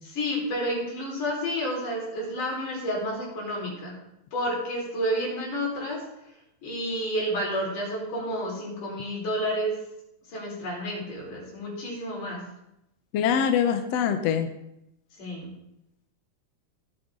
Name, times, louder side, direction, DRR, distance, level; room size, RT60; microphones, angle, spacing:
voice 1, 0.0-3.9 4.3-6.0 6.6-9.7 10.3-12.4 15.2-15.5, equal, 85° left, -3 dB, 6.0 m, -30 dB
voice 2, 13.1-14.5, left 8 dB, 70° left, 7 dB, 1.8 m, -23 dB
18.0 x 9.3 x 3.8 m, 0.83 s
omnidirectional pair, 3.5 m